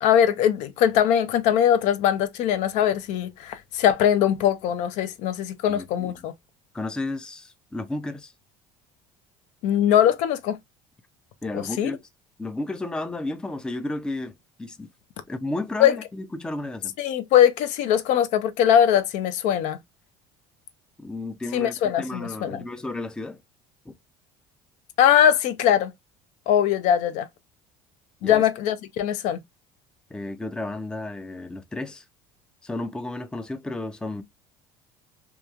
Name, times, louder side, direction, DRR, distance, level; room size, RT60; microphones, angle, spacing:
voice 1, 0.0-6.3 9.6-10.6 11.5-11.9 15.8-15.9 17.0-19.8 21.5-22.6 25.0-25.9 26.5-27.3 28.2-29.4, left 10 dB, 65° left, 0.5 m, -21 dB
voice 2, 5.7-6.1 6.7-8.3 11.4-12.0 12.4-14.9 15.3-17.0 21.0-23.4 23.9-24.0 28.2-28.5 30.1-32.0 32.6-34.2, left 2 dB, 5° left, 0.4 m, -33 dB
2.9 x 2.2 x 2.3 m
supercardioid pair, 115°, 13 cm